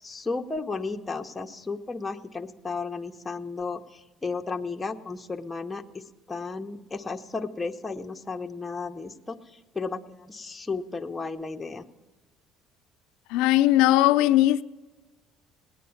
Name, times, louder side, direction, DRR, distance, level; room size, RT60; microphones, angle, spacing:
voice 1, 0.0-11.8, left 4 dB, 10° left, 0.7 m, -34 dB
voice 2, 13.3-14.6, left 15 dB, 80° left, 0.4 m, -19 dB
19.5 x 9.5 x 7.0 m
cardioid pair, 155°, 0 cm